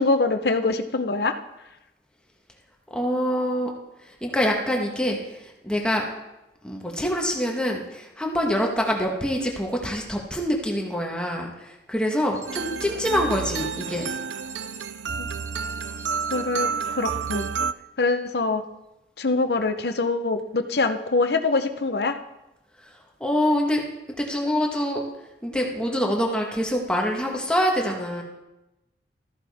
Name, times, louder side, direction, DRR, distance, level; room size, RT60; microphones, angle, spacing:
voice 1, 0.0-1.4 15.2-15.3 16.3-17.5 18.0-18.6 19.2-22.2, left 3 dB, 65° left, 8 dB, 0.8 m, -24 dB
voice 2, 2.9-3.7 4.0-6.0 6.6-14.1 22.8-22.9 23.2-23.8 24.2-25.0 25.4-28.2, equal, 5° left, 0 dB, 1.3 m, -25 dB
sound 1, 12.3-12.8 13.6-16.7 17.2-17.5, right 5 dB, 15° right, 0.9 m, -44 dB
sound 2, 12.5-17.7, right 6 dB, 80° right, 0.4 m, -30 dB
14.0 x 11.0 x 3.5 m, 0.95 s
head